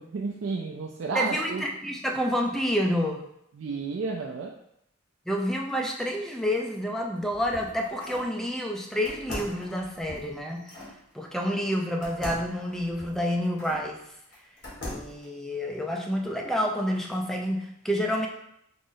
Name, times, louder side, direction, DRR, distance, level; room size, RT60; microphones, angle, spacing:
voice 1, 0.0-1.6 3.6-4.5, right 4 dB, 75° right, -1 dB, 0.4 m, -32 dB
voice 2, 1.1-3.2 5.3-10.7 11.1-14.0 14.8-18.3, equal, ahead, 1 dB, 0.3 m, -29 dB
sound 1, 7.0-8.3 9.0-10.9 12.0-13.9 14.3-15.2, left 1 dB, 65° left, 1.2 m, -40 dB
3.7 x 2.0 x 3.8 m, 0.76 s
head